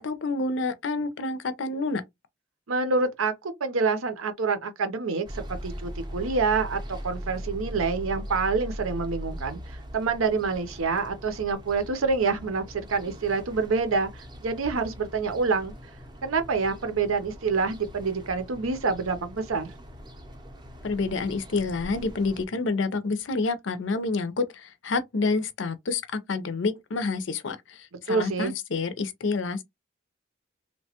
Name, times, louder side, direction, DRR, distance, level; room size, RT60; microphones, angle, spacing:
voice 1, 0.0-2.0 20.8-29.6, left 3 dB, 65° left, 0.5 m, -28 dB
voice 2, 2.7-15.7 16.2-19.7 27.9-28.5, right 4 dB, 90° right, 0.7 m, -27 dB
sound 1, 5.2-22.4, equal, 20° right, 0.5 m, -40 dB
2.9 x 2.2 x 2.8 m
head